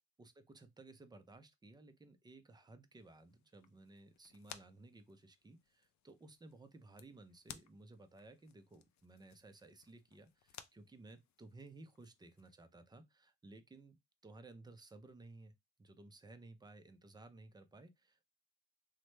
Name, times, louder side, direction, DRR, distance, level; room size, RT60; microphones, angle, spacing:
voice 1, 0.2-14.0 14.2-15.5 15.8-18.3, right 2 dB, 15° right, 0.3 m, -57 dB
sound 1, 2.9-12.5, left 10 dB, 55° left, 0.4 m, -60 dB
3.0 x 2.1 x 3.1 m
cardioid pair, 100°, 35 cm